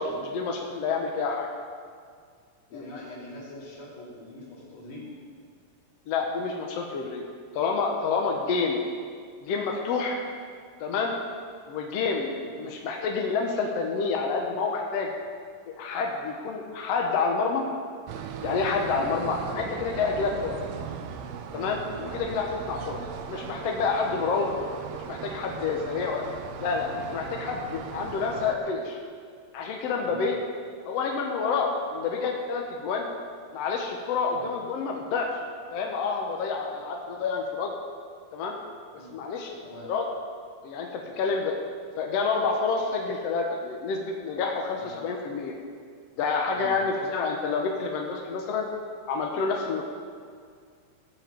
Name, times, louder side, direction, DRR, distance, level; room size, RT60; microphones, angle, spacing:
voice 1, 0.0-1.5 2.7-2.8 6.1-7.2 7.5-8.8 9.4-10.2 10.8-11.1 11.7-15.1 15.7-17.6 18.4-20.6 21.5-23.0 23.3-24.5 24.9-26.3 26.6-29.0 29.5-30.4 30.9-33.1 33.5-35.3 35.7-37.7 38.3-38.6 39.1-39.5 39.8-40.2 40.6-41.6 42.0-45.5 46.2-48.6 49.1-49.8, left 4 dB, 70° left, 1 dB, 1.6 m, -28 dB
voice 2, 2.7-5.1 12.4-12.5 18.9-19.1 20.7-20.8 21.9-22.1 30.0-30.2 34.3-34.5 36.7-36.8 38.9-39.2 39.6-39.9 44.8-44.9 46.5-46.7, equal, 50° left, -6 dB, 4.1 m, -43 dB
sound 1, 18.1-28.6, right 7 dB, 85° right, 2.4 m, -38 dB
15.5 x 5.7 x 7.5 m, 2.1 s
omnidirectional pair, 4.1 m